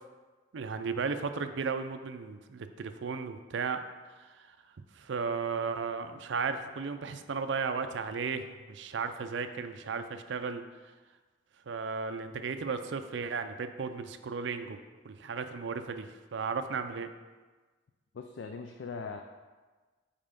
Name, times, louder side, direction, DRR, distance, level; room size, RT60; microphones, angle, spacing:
voice 1, 0.5-3.8 5.0-10.6 11.7-14.8 15.0-17.1, right 5 dB, 70° right, 9 dB, 0.4 m, -35 dB
voice 2, 18.1-19.2, left 5 dB, 70° left, 4 dB, 0.4 m, -40 dB
5.4 x 4.3 x 5.2 m, 1.3 s
head